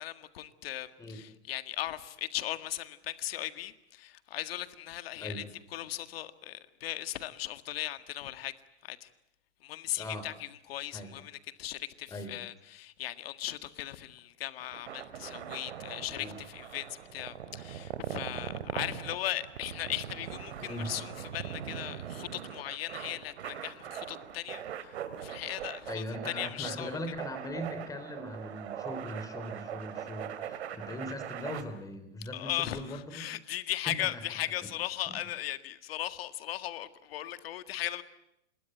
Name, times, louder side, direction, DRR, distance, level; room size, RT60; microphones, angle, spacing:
voice 1, 0.0-5.4 5.7-8.6 8.8-9.1 9.6-27.0 32.3-38.0, left 13 dB, 60° left, 1.8 m, -38 dB
voice 2, 10.0-10.3 10.9-11.1 12.1-12.3 16.2-16.4 20.6-20.9 25.9-33.2 33.9-34.0, left 1 dB, 10° left, 3.5 m, -40 dB
sound 1, 14.6-31.6, right 9 dB, 65° right, 2.8 m, -41 dB
27.0 x 22.0 x 9.1 m
hypercardioid pair, 140°, 34 cm